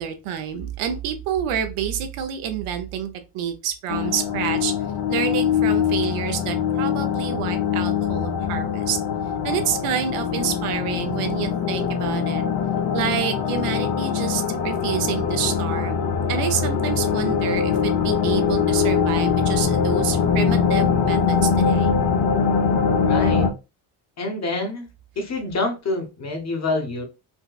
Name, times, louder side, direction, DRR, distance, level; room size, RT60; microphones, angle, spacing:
voice 1, 0.0-4.7 5.1-9.0 9.4-12.4 12.9-21.9, right 9 dB, 80° right, 0.8 m, -28 dB
sound 1, 3.9-23.5, left 6 dB, 50° left, 0.7 m, -22 dB
voice 2, 23.1-23.5 24.2-24.9 25.2-27.0, left 2 dB, 30° left, 1.1 m, -26 dB
4.5 x 2.2 x 2.3 m
cardioid pair, 110°, 50 cm